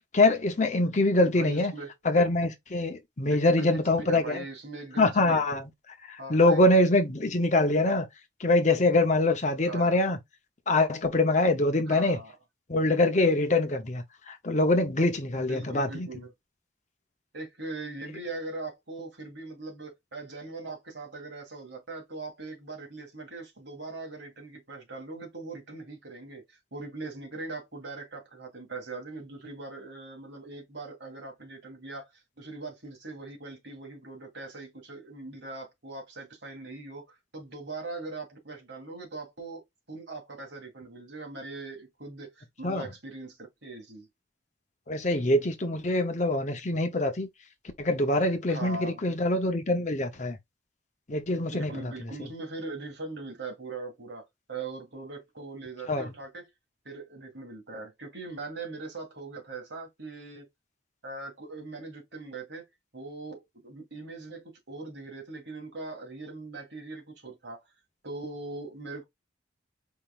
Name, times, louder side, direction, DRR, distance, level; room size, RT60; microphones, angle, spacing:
voice 1, 0.1-1.7 2.0-4.4 5.0-5.7 6.1-8.1 8.4-10.2 10.7-12.2 12.7-16.1 42.6-42.9 44.9-47.3 47.8-50.4 51.1-51.9 55.9-56.1, left 2 dB, 40° left, 0.8 m, -24 dB
voice 2, 1.2-1.9 3.3-5.5 6.2-6.9 9.6-10.0 11.9-12.4 15.3-16.3 17.3-32.1 32.4-37.0 37.3-39.6 39.9-44.1 48.4-49.2 51.3-54.2 54.5-56.5 56.9-60.5 61.0-62.6 62.9-67.6 68.0-69.0, right 3 dB, 70° right, 2.0 m, -41 dB
4.6 x 3.6 x 2.4 m
head